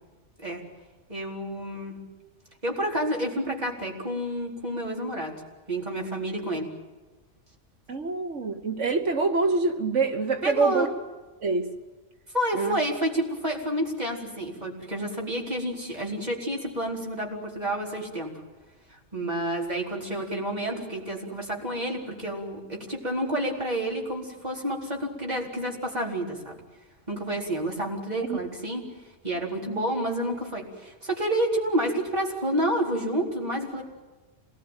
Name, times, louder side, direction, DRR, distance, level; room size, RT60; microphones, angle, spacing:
voice 1, 1.1-2.0 2.6-5.3 5.7-6.7 10.4-10.9 12.3-18.4 18.9-26.5 27.1-33.8, right 1 dB, 30° right, 4.5 m, -29 dB
voice 2, 7.9-10.9 11.4-11.7 12.5-12.8 28.2-28.4, right 4 dB, 70° right, 1.7 m, -25 dB
27.0 x 19.5 x 9.2 m
omnidirectional pair, 1.3 m